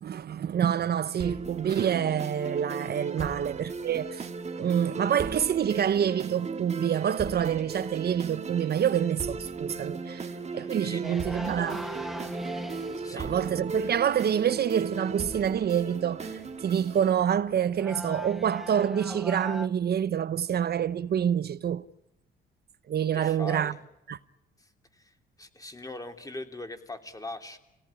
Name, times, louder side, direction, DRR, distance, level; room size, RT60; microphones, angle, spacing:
voice 1, 0.0-4.3 4.6-10.3 10.5-11.8 13.1-21.8 22.9-23.7 24.1-24.2, right 9 dB, 55° right, 0.9 m, -27 dB
sound 1, 1.2-17.2, right 4 dB, 35° right, 1.9 m, -37 dB
voice 2, 10.1-11.6 13.0-13.4 23.1-23.8 24.6-27.6, left 2 dB, 15° left, 3.3 m, -42 dB
sound 2, 11.0-19.7, equal, ahead, 1.4 m, -41 dB
26.5 x 17.5 x 9.9 m
cardioid pair, 90°, 20 cm